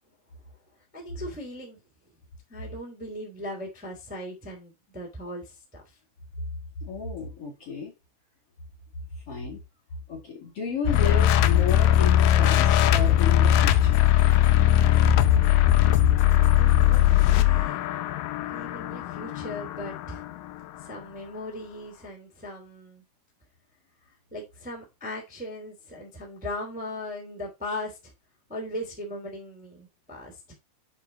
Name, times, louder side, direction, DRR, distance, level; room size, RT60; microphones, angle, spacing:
voice 1, 0.9-1.8 2.5-5.8 16.3-17.8 18.4-20.2 20.8-23.0 24.3-28.1 28.5-30.5, left 1 dB, 5° right, 2.0 m, -38 dB
voice 2, 6.8-7.9 9.3-9.6 10.1-14.0, left 4 dB, 40° left, 2.7 m, -33 dB
sound 1, 10.9-20.8, left 12 dB, 85° left, 2.0 m, -20 dB
9.4 x 4.4 x 4.0 m
omnidirectional pair, 4.7 m